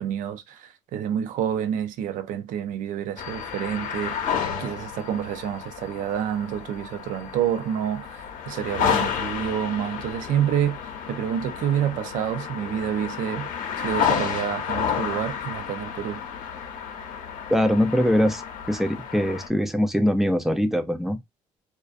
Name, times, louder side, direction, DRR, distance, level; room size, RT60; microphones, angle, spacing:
voice 1, 0.0-4.2 4.6-13.5 13.8-16.2, right 9 dB, 75° right, 0.4 m, -28 dB
sound 1, 3.2-19.5, left 7 dB, 80° left, 0.7 m, -31 dB
voice 2, 17.5-21.2, equal, ahead, 0.3 m, -22 dB
2.3 x 2.2 x 2.5 m
cardioid pair, 125°, 14 cm